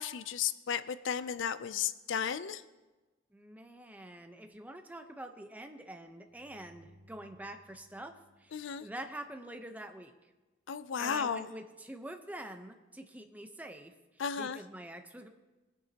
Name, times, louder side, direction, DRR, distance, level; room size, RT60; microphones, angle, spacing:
voice 1, 0.0-2.6 8.5-8.9 10.7-11.5 14.2-14.6, left 7 dB, 70° left, 14 dB, 0.4 m, -34 dB
voice 2, 3.3-10.1 11.0-13.9 14.4-15.3, right 1 dB, 10° right, 6 dB, 0.8 m, -46 dB
sound 1, 6.3-9.5, left 1 dB, 45° right, 2.2 m, -63 dB
20.5 x 10.0 x 2.9 m, 1.2 s
head